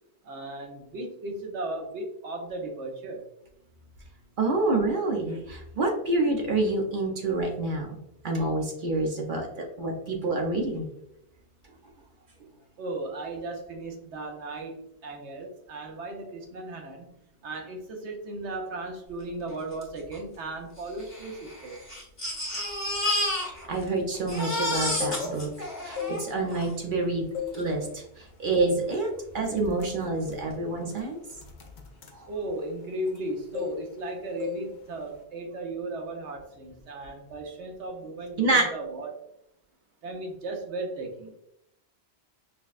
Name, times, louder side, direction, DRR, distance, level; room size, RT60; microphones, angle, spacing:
voice 1, 0.2-3.2 12.8-14.8 15.0-17.1 17.4-21.8 32.3-39.2 40.0-41.3, right 2 dB, 85° right, 1 dB, 1.1 m, -36 dB
voice 2, 4.4-7.9 8.2-10.8 23.7-25.5 25.8-27.3 27.5-29.1 29.3-31.2 38.4-38.7, right 2 dB, 55° right, 0 dB, 0.8 m, -27 dB
Crying sobbing, 19.8-19.9 20.1-20.2 21.0-23.9 24.1-26.7 27.5-27.6 28.0-28.1, left 1 dB, 40° left, 1.6 m, -31 dB
sound 1, 25.0-25.5 25.9-27.0 27.3-27.7 28.1-28.3 28.9-29.1 29.4-33.2 33.5-34.1 34.4-34.7 35.0-35.2, left 8 dB, 55° left, 0.5 m, -37 dB
5.6 x 2.2 x 2.4 m, 0.80 s
omnidirectional pair, 1.1 m